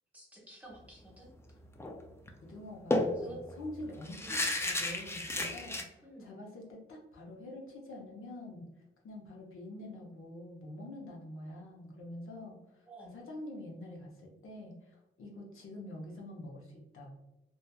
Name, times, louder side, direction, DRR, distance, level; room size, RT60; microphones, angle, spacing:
voice 1, 0.1-1.3 3.2-3.4 4.2-4.4 6.0-6.4 12.9-13.2, right 1 dB, 5° right, -4 dB, 1.0 m, -51 dB
sound 1, 1.8-2.0 2.3-2.4 2.9-5.8, left 2 dB, 10° left, 0.3 m, -33 dB
voice 2, 2.4-8.7 9.0-17.1, left 1 dB, 85° left, -1 dB, 0.7 m, -46 dB
2.7 x 2.3 x 2.2 m, 0.96 s
cardioid pair, 85°, 21 cm